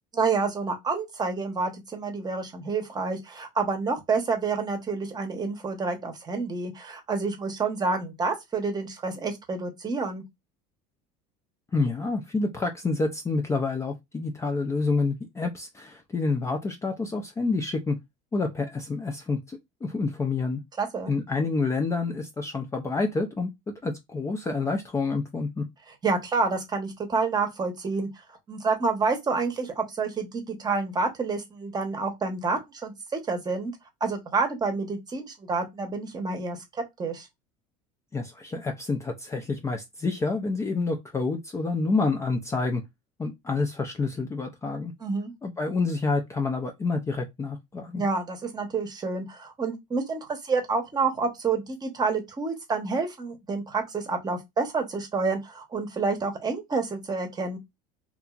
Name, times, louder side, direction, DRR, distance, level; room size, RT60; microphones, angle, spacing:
voice 1, 0.1-10.2 20.8-21.1 26.0-28.1 28.5-33.7 34.0-36.6 37.0-37.3 45.0-45.3 48.0-57.6, right 4 dB, 25° right, 0.9 m, -28 dB
voice 2, 11.7-18.0 18.3-20.6 21.1-23.5 23.8-25.7 38.1-42.8 43.2-44.9 45.4-48.0, left 3 dB, 15° left, 0.4 m, -28 dB
2.8 x 2.5 x 2.3 m
supercardioid pair, 115°, 17 cm